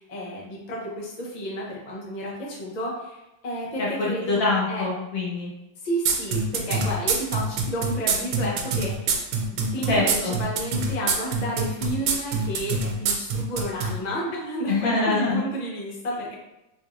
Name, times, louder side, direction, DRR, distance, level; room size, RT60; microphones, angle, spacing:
voice 1, 0.0-4.8 5.8-9.2 9.7-16.3, right 1 dB, 85° left, -4 dB, 0.3 m, -31 dB
voice 2, 3.8-5.5 9.9-10.3 14.7-15.4, left 3 dB, 60° left, -4 dB, 0.9 m, -24 dB
sound 1, 6.1-13.9, right 5 dB, 85° right, 1.3 m, -24 dB
3.7 x 2.9 x 2.5 m, 0.95 s
omnidirectional pair, 2.0 m